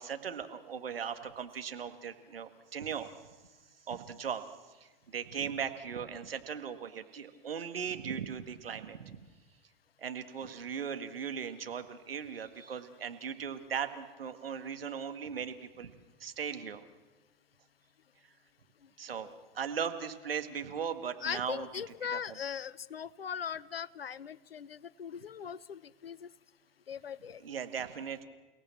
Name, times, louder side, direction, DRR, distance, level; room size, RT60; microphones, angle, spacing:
voice 1, 0.0-3.1 3.9-4.4 5.1-9.2 10.0-15.9 16.2-16.8 19.0-19.3 19.6-21.7 22.1-22.4 27.4-28.2, right 7 dB, 80° right, 8 dB, 1.8 m, -38 dB
voice 2, 19.1-19.4 21.2-26.3 26.9-27.4, left 7 dB, 85° left, 21 dB, 0.7 m, -40 dB
29.5 x 17.5 x 7.5 m, 1.2 s
figure-of-eight pair, 95°, 29 cm